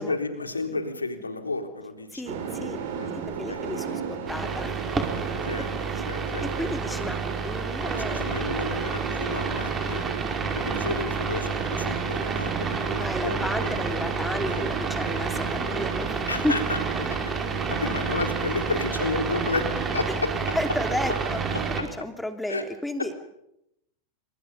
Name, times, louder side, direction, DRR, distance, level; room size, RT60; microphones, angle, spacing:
voice 1, 0.0-2.2 2.9-3.2 3.5-3.6 5.5-6.5 7.9-10.1 10.5-13.8 14.5-14.6 16.3-17.2 17.7-20.3 21.5-21.6 22.5-22.6 23.0-23.1, left 3 dB, 80° left, 6 dB, 3.9 m, -32 dB
voice 2, 2.1-2.8 3.1-5.1 5.6-5.7 5.9-6.0 6.4-8.2 12.5-16.2 16.4-16.6 20.1-20.2 20.5-21.4 21.8-23.1, left 1 dB, 5° left, 7 dB, 2.9 m, -32 dB
sound 1, 2.2-21.7, right 6 dB, 55° right, 6.4 m, -34 dB
sound 2, 4.3-21.8, right 5 dB, 20° right, 5.3 m, -30 dB
29.0 x 26.5 x 5.7 m, 0.80 s
figure-of-eight pair, 90°, 0 cm